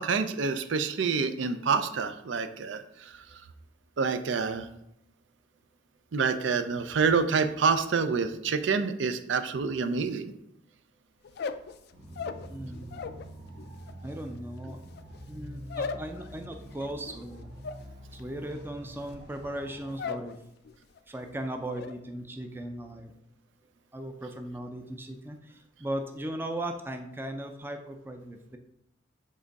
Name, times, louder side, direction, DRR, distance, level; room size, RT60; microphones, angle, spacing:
voice 1, 0.0-3.2 4.0-4.7 6.1-10.2, right 5 dB, 70° right, 9 dB, 0.5 m, -27 dB
sound 1, 11.2-13.3 13.6-20.3 20.6-21.1 21.4-21.9, left 5 dB, 55° left, 0.3 m, -39 dB
sound 2, 11.9-19.9, right 1 dB, 55° right, 1.5 m, -46 dB
voice 2, 12.5-13.1 14.0-14.8 15.3-17.5 18.1-20.4 21.1-23.1 23.9-28.6, right 1 dB, 10° right, 5 dB, 0.4 m, -37 dB
7.4 x 3.5 x 4.0 m, 0.80 s
head